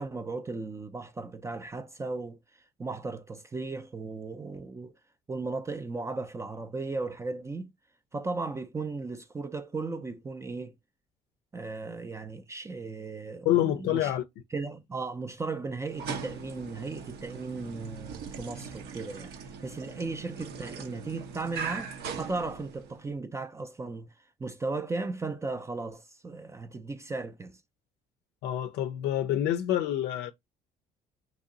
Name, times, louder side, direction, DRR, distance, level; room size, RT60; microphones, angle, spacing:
voice 1, 0.0-2.4 2.8-4.9 5.3-7.7 8.1-10.7 11.5-14.1 14.5-21.9 22.2-24.1 24.4-27.5, right 3 dB, 15° right, 0.4 m, -36 dB
voice 2, 13.4-14.2 28.4-30.3, left 12 dB, 75° left, 0.4 m, -27 dB
sound 1, 15.8-23.1, right 6 dB, 75° right, 0.8 m, -40 dB
2.9 x 2.7 x 3.8 m
cardioid pair, 110°, 17 cm